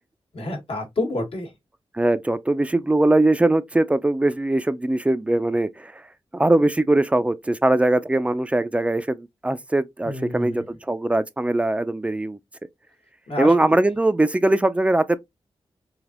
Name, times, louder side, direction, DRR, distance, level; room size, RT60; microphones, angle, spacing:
voice 1, 0.3-1.5 10.0-10.6 13.3-13.5, left 2 dB, 65° left, 1.1 m, -28 dB
voice 2, 1.9-6.0 6.3-12.4 13.4-15.2, right 2 dB, 10° right, 0.3 m, -21 dB
3.3 x 2.5 x 2.4 m
cardioid pair, 70°, 10 cm